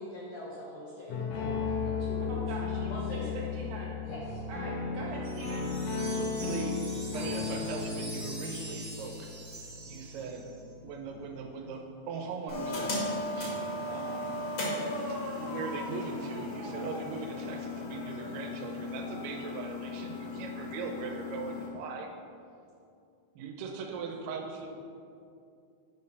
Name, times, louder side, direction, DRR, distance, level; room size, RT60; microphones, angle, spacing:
voice 1, 0.0-2.4 2.9-3.3 4.0-4.4, left 1 dB, 90° left, -5 dB, 1.4 m, -43 dB
sound 1, 1.1-11.6, left 5 dB, 70° left, 1.8 m, -35 dB
voice 2, 2.3-3.9 4.5-5.7 12.7-12.9, right 2 dB, 75° right, -4 dB, 2.0 m, -42 dB
Wind chime, 5.2-10.6, right 2 dB, 40° right, 1.1 m, -45 dB
voice 3, 6.1-6.8 7.1-10.5 10.8-13.5 13.9-14.4 15.1-22.1 23.4-24.7, right 5 dB, 90° right, 2 dB, 2.9 m, -40 dB
sound 2, 12.5-21.7, left 2 dB, 50° left, 2.0 m, -36 dB
9.2 x 4.4 x 5.3 m, 2.5 s
omnidirectional pair, 4.5 m